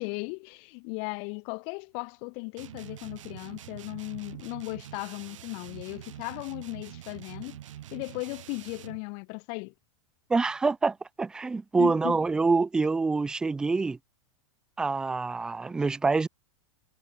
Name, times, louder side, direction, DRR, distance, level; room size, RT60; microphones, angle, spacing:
voice 1, 0.0-7.6 7.9-9.7 11.8-12.2, left 40 dB or more, 30° left, 0.7 m, -37 dB
sound 1, 2.6-9.0, right 12 dB, 75° right, 3.7 m, -45 dB
voice 2, 10.3-14.0 14.8-16.3, right 4 dB, 5° right, 0.4 m, -26 dB
supercardioid pair, 170°, 16 cm